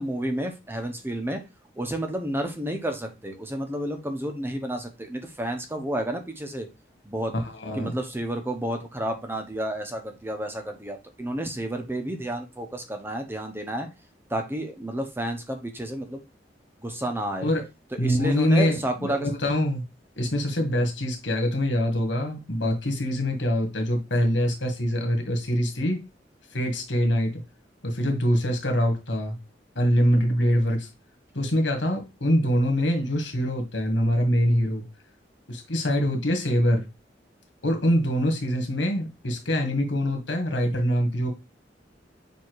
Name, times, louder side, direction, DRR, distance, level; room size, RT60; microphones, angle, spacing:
voice 1, 0.0-1.4 1.8-6.7 7.0-7.3 7.7-13.9 14.3-16.2 16.8-17.5 18.0-19.3, right 1 dB, 15° right, 0.9 m, -31 dB
voice 2, 7.3-7.9 17.4-17.6 18.0-19.8 20.2-26.0 26.5-27.3 27.8-29.4 29.8-30.9 31.3-34.8 35.5-36.8 37.6-41.3, equal, 85° left, 1.9 m, -24 dB
7.3 x 2.8 x 4.7 m
head